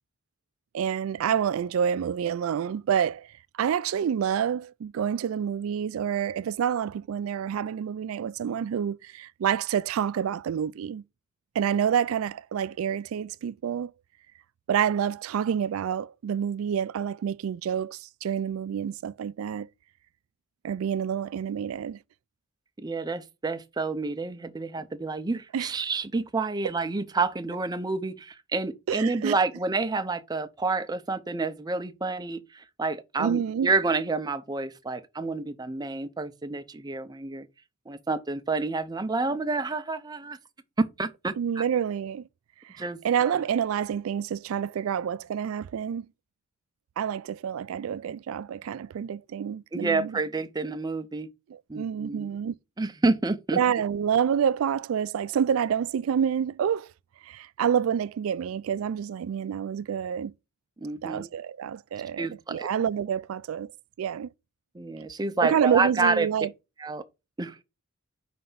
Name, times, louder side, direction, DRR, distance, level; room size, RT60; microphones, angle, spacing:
voice 1, 0.7-3.3 3.6-11.0 11.6-13.9 14.7-19.7 20.6-22.0 25.5-25.7 28.9-29.4 33.2-33.7 41.4-42.3 42.6-46.1 47.0-50.2 51.5-52.5 53.5-56.9 57.2-60.3 61.0-63.7 64.0-64.3 65.4-66.5, right 8 dB, 85° right, 0.3 m, -28 dB
voice 2, 22.8-37.5 37.9-40.4 40.8-41.6 42.8-43.3 49.7-51.3 51.7-52.3 52.8-53.6 60.8-61.3 62.2-62.7 64.7-66.3 66.8-67.0 67.4-67.6, right 3 dB, 20° right, 0.5 m, -29 dB
5.2 x 3.4 x 5.5 m
head